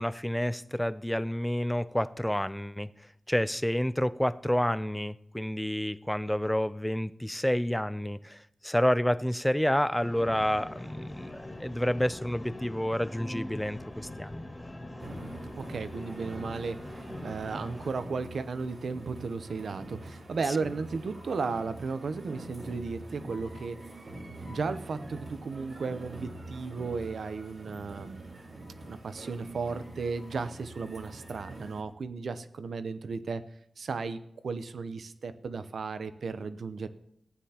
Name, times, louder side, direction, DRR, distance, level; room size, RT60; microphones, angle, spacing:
voice 1, 0.0-2.9 3.3-14.5, equal, 5° left, 15 dB, 0.4 m, -29 dB
sound 1, 10.0-17.9, left 1 dB, 20° left, 1.9 m, -43 dB
sound 2, 15.0-31.8, right 1 dB, 55° right, 2.1 m, -45 dB
voice 2, 15.6-16.8 17.2-23.8 24.5-28.4 28.7-33.4 33.8-36.9, right 4 dB, 80° right, 11 dB, 0.7 m, -35 dB
15.0 x 9.5 x 2.9 m, 0.73 s
wide cardioid pair, 115°, 0 cm